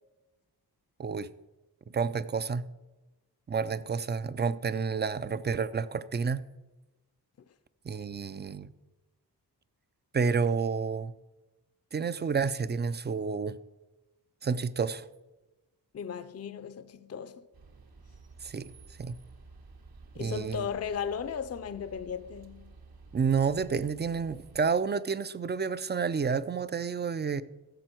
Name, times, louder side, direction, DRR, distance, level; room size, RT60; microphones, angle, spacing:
voice 1, 1.9-2.6 3.5-6.4 7.8-8.7 10.1-11.1 11.9-13.6 14.4-15.1 18.4-18.7 19.0-19.2 20.2-20.7 23.1-27.4, right 5 dB, 30° right, 0.4 m, -30 dB
voice 2, 15.9-17.4 20.1-22.7, left 7 dB, 40° left, 0.5 m, -36 dB
sound 1, 17.5-24.6, right 3 dB, 65° right, 1.3 m, -52 dB
15.0 x 6.9 x 4.4 m
wide cardioid pair, 110°, 39 cm